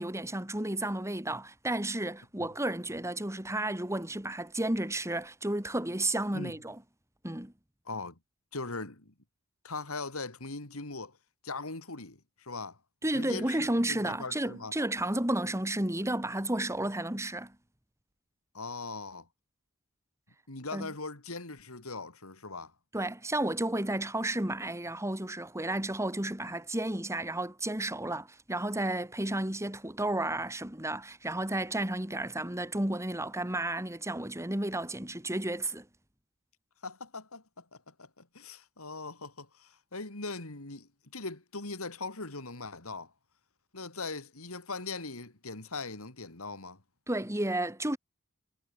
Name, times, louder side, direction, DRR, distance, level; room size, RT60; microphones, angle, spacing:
voice 1, 0.0-6.8 7.2-7.5 13.0-17.5 20.7-20.9 22.9-35.9 47.1-48.0, right 1 dB, 15° right, 3.1 m, -32 dB
voice 2, 7.9-8.2 8.5-9.1 9.6-11.2 11.4-12.8 13.1-14.7 18.5-19.3 20.5-22.7 36.8-43.1 43.7-46.8, left 3 dB, 80° left, 3.5 m, -40 dB
head